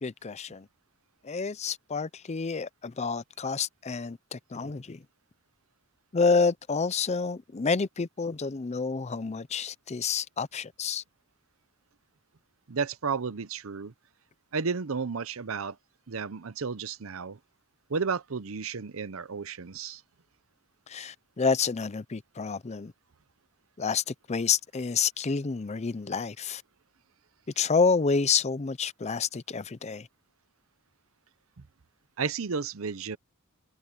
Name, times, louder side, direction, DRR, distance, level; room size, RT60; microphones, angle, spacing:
voice 1, 0.0-0.7 1.2-5.0 6.1-11.0 20.9-22.9 23.8-26.6 27.6-30.1, left 5 dB, 30° left, 0.5 m, -29 dB
voice 2, 12.7-13.9 14.5-15.8 16.1-17.4 17.9-20.0 32.2-33.2, right 5 dB, 65° right, 0.7 m, -32 dB
open air
head